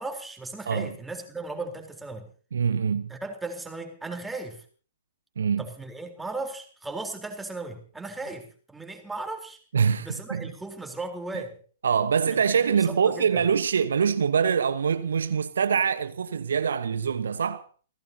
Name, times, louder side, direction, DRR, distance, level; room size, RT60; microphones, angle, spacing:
voice 1, 0.0-2.3 3.1-4.6 5.6-9.6 10.0-11.6 12.3-12.4 12.7-13.4, right 2 dB, 5° right, 3.8 m, -36 dB
voice 2, 2.5-3.1 5.4-5.6 9.7-10.5 11.3-11.4 11.8-17.6, right 6 dB, 65° right, 1.1 m, -24 dB
29.5 x 16.5 x 2.8 m
figure-of-eight pair, 110°, 0 cm